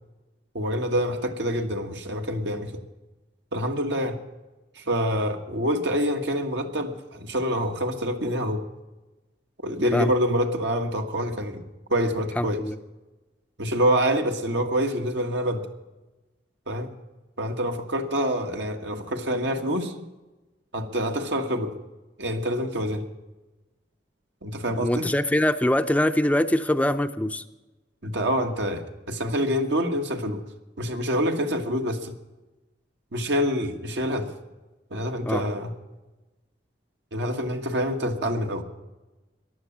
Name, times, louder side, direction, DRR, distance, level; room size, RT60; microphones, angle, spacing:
voice 1, 0.5-2.8 3.5-4.2 4.7-8.6 9.6-11.6 11.9-12.6 13.6-15.7 16.7-16.9 17.4-19.9 20.7-21.7 22.2-23.0 24.4-25.0 28.0-30.4 30.8-32.1 33.1-34.3 34.9-35.7 37.1-38.6, equal, 75° right, 5 dB, 1.6 m, -26 dB
voice 2, 12.4-12.8 24.7-27.4 35.3-35.5, left 1 dB, 10° left, 10 dB, 0.5 m, -23 dB
14.5 x 11.0 x 7.3 m, 1.1 s
head